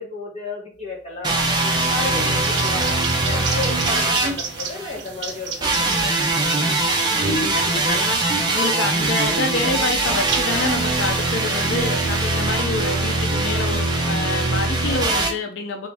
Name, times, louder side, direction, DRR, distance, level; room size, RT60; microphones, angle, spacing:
voice 1, 0.0-6.1, left 3 dB, 35° left, -4 dB, 1.3 m, -33 dB
sound 1, 1.2-5.0 5.6-15.3, right 2 dB, 25° right, 0.7 m, -22 dB
voice 2, 2.0-2.5 7.2-15.9, left 3 dB, 80° left, 4 dB, 0.4 m, -27 dB
sound 2, 2.4-12.3, right 6 dB, 70° right, 0.7 m, -34 dB
3.1 x 2.9 x 3.4 m, 0.41 s
head